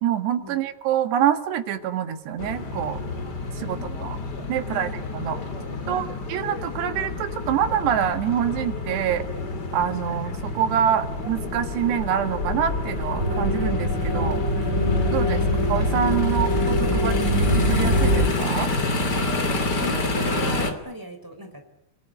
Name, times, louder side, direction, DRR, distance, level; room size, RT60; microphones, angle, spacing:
voice 1, 0.0-3.0 3.6-4.2 4.5-5.4 5.9-9.2 9.7-14.4 15.1-15.4 15.7-18.7, right 9 dB, 80° right, 8 dB, 3.9 m, -26 dB
sound 1, 2.4-20.7, left 2 dB, 30° left, 2.8 m, -29 dB
voice 2, 3.6-4.1 4.6-5.0 5.8-6.1 10.1-10.2 19.7-21.6, right 1 dB, 5° right, 5 dB, 4.5 m, -37 dB
sound 2, 13.2-18.3, left 1 dB, 20° right, 3.9 m, -22 dB
30.0 x 19.0 x 9.9 m, 0.77 s
omnidirectional pair, 4.8 m